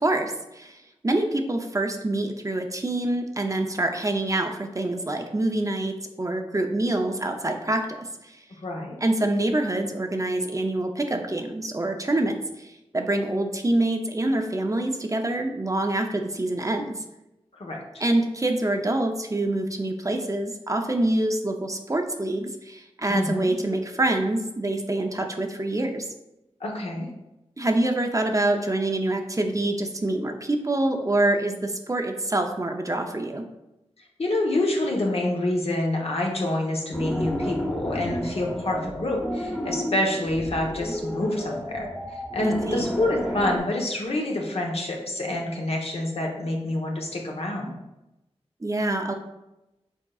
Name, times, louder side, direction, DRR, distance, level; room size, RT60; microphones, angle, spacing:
voice 1, 0.0-8.4 9.0-17.0 18.0-26.1 27.6-33.4 42.7-42.8 48.6-49.1, right 1 dB, 30° right, 4 dB, 0.5 m, -26 dB
voice 2, 8.6-9.0 17.6-17.8 23.1-23.5 26.6-27.1 34.2-41.9 42.1-47.8, left 1 dB, 65° left, -1 dB, 0.9 m, -27 dB
sound 1, 36.9-43.6, equal, 5° left, 0.9 m, -31 dB
6.1 x 3.7 x 2.3 m, 0.93 s
wide cardioid pair, 55°, 11 cm